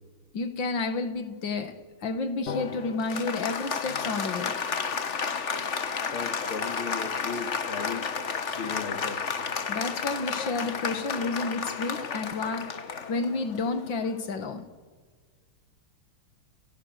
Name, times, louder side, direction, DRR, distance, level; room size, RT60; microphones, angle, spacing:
voice 1, 0.3-4.6 9.7-12.7 13.1-14.7, left 3 dB, 60° left, 9 dB, 2.4 m, -31 dB
Applause, 2.5-14.3, left 6 dB, 40° left, 1.3 m, -32 dB
voice 2, 6.1-8.1 8.6-9.2, left 5 dB, 80° left, 7 dB, 3.0 m, -36 dB
29.5 x 29.5 x 6.6 m, 1.5 s
omnidirectional pair, 2.3 m